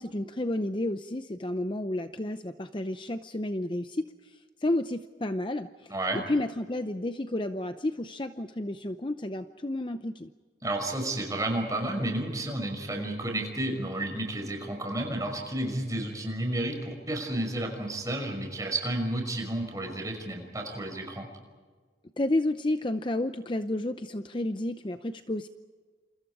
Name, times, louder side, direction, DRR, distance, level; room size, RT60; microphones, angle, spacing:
voice 1, 0.0-4.1 4.6-10.3 22.2-25.5, left 1 dB, 25° left, 9 dB, 0.7 m, -31 dB
voice 2, 5.9-6.2 10.6-21.3, right 1 dB, 20° right, 3 dB, 5.8 m, -31 dB
29.0 x 28.0 x 4.9 m, 1.5 s
head